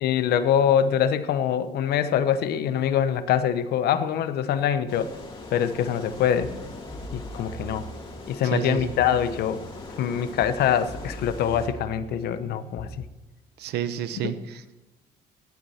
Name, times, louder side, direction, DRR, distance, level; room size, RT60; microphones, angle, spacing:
voice 1, 0.0-5.1 5.5-6.5 7.1-7.9 8.3-9.6 10.0-13.0, left 9 dB, 70° left, 12 dB, 0.9 m, -24 dB
sound 1, 4.9-11.7, left 2 dB, 30° left, 2.7 m, -41 dB
sound 2, 6.2-13.0, right 1 dB, 10° left, 2.6 m, -41 dB
voice 2, 8.4-8.9 13.6-14.8, right 9 dB, 75° right, 12 dB, 0.9 m, -30 dB
18.0 x 8.8 x 4.3 m, 1.0 s
cardioid pair, 110°, 17 cm